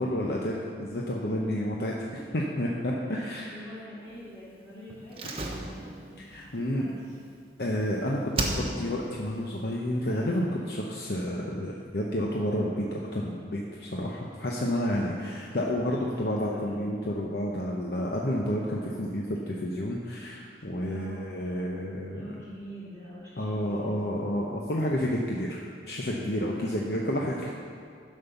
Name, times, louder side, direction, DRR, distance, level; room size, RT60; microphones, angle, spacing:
voice 1, 0.0-1.9 2.3-3.5 6.3-6.8 7.6-22.2 23.4-27.5, left 1 dB, 60° left, -2 dB, 0.8 m, -30 dB
voice 2, 3.1-6.1 6.7-7.2 16.0-16.9 20.8-21.6 22.1-24.0 26.6-27.4, equal, 10° left, -11 dB, 2.4 m, -46 dB
Slam, 5.1-7.9 8.3-9.1 9.4-9.5, right 2 dB, 30° right, 1.0 m, -34 dB
11.0 x 5.5 x 6.9 m, 2.2 s
head